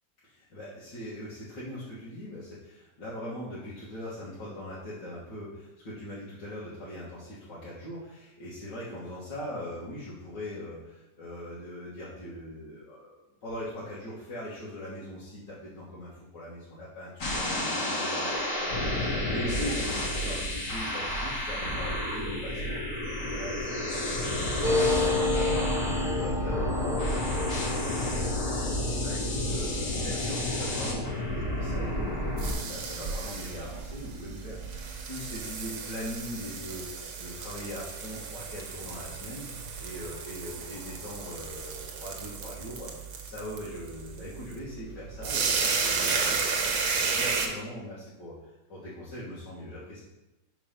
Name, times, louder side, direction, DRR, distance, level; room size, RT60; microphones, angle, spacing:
voice 1, 0.2-13.1 13.4-48.4 48.7-50.0, left 1 dB, 90° left, -9 dB, 2.2 m, -41 dB
sound 1, 17.2-32.5, left 1 dB, 55° left, 1.4 m, -31 dB
sound 2, 24.6-33.8 34.1-34.2 34.4-34.9, left 2 dB, 5° right, 0.6 m, -32 dB
sound 3, 31.6-47.5, right 5 dB, 65° right, 1.3 m, -33 dB
5.2 x 4.3 x 5.7 m, 0.99 s
omnidirectional pair, 1.8 m